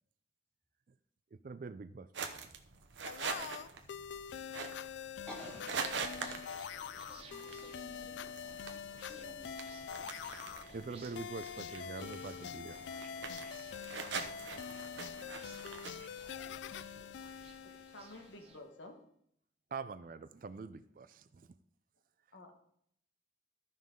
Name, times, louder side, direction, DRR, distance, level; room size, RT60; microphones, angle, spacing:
voice 1, 1.3-2.5 10.7-12.8 19.7-21.5, right 4 dB, 50° right, 13 dB, 0.4 m, -45 dB
sound 1, 2.1-17.5, right 5 dB, 85° right, 0.9 m, -45 dB
sound 2, 3.0-18.5, left 7 dB, 75° left, 0.3 m, -45 dB
voice 2, 4.1-6.6 7.1-8.1 9.1-9.5 11.0-11.1, equal, 5° left, -3 dB, 2.3 m, -54 dB
sound 3, 5.3-18.6, right 3 dB, 35° right, 1.0 m, -58 dB
voice 3, 17.6-19.0 22.3-22.5, left 1 dB, 90° left, 4 dB, 1.4 m, -52 dB
14.0 x 5.5 x 3.7 m, 0.69 s
head